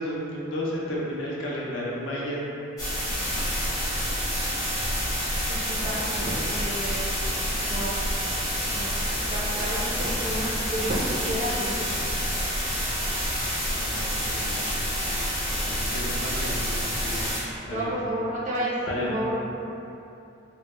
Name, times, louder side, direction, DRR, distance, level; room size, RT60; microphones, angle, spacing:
voice 1, 0.0-2.4 13.8-14.6 15.4-17.3 17.7-17.9 18.8-19.1, equal, 65° left, -4 dB, 0.5 m, -33 dB
sound 1, 2.8-17.4, equal, 15° left, 0.6 m, -28 dB
voice 2, 3.2-3.6 5.5-7.3 7.6-8.0 8.6-12.0 17.7-18.8 19.0-19.3, right 1 dB, 35° right, -6 dB, 0.4 m, -32 dB
2.1 x 2.1 x 3.1 m, 2.8 s
head